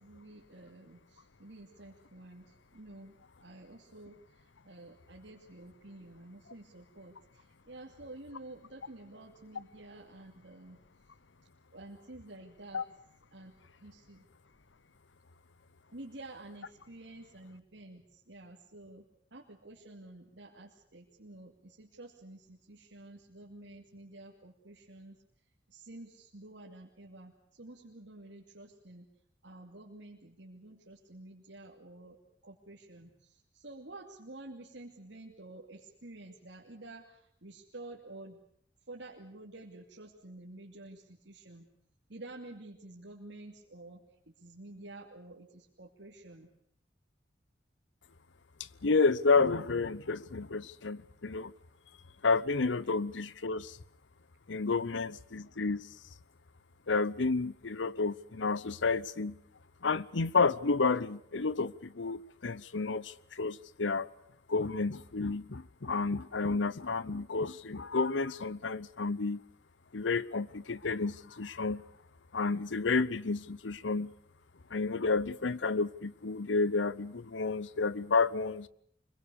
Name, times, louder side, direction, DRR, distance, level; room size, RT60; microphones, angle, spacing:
voice 1, 0.0-10.8 11.7-12.8 13.3-13.6 13.8-14.2 15.9-25.2 25.7-29.1 29.4-32.2 32.4-38.4 38.9-41.7 42.1-46.5, right 2 dB, 75° right, 2.7 m, -50 dB
voice 2, 48.8-51.5 52.2-53.8 54.5-55.9 56.9-59.4 59.8-64.1 64.5-69.4 69.9-71.8 72.3-74.1 74.7-78.7, left 4 dB, 85° left, 0.9 m, -30 dB
25.0 x 22.5 x 7.0 m
head